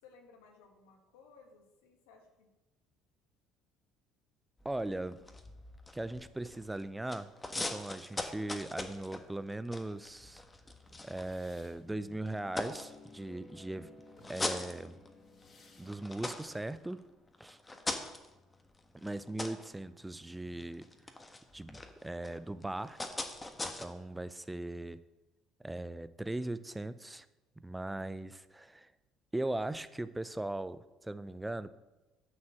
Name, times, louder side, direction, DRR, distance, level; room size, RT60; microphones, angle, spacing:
voice 1, 0.0-2.5 4.9-5.3 17.8-18.0, left 4 dB, 90° left, 3 dB, 2.1 m, -60 dB
sound 1, 4.6-6.8 7.1-11.8 12.3-13.5 14.0-15.4 15.8-23.9, left 2 dB, 20° left, 1.4 m, -42 dB
voice 2, 4.6-5.2 5.9-7.3 7.6-10.4 11.0-13.9 14.3-15.0 15.8-17.0 17.4-17.6 18.9-20.8 21.5-23.0 23.6-25.0 25.6-27.3 27.6-28.9 29.3-31.7, right 1 dB, 10° right, 15 dB, 0.6 m, -39 dB
sound 2, 9.9-16.3, left 2 dB, 40° left, 2.7 m, -57 dB
9.6 x 6.2 x 7.5 m, 1.1 s
supercardioid pair, 80°, 0 cm